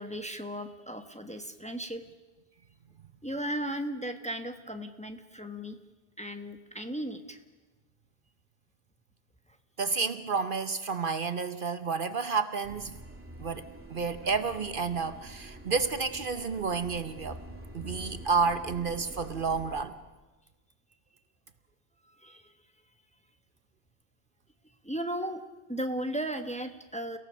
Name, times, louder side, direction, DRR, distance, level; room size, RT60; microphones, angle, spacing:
voice 1, 0.0-2.0 3.2-5.8 6.2-7.4 22.2-22.5 24.8-25.4 25.7-27.2, right 1 dB, 5° left, 7 dB, 1.2 m, -36 dB
voice 2, 9.8-13.0 13.4-17.4 17.7-20.0, right 5 dB, 55° right, 11 dB, 1.0 m, -30 dB
sound 1, 12.6-19.9, right 1 dB, 10° right, 2.3 m, -46 dB
29.5 x 17.5 x 6.3 m, 1.2 s
omnidirectional pair, 1.1 m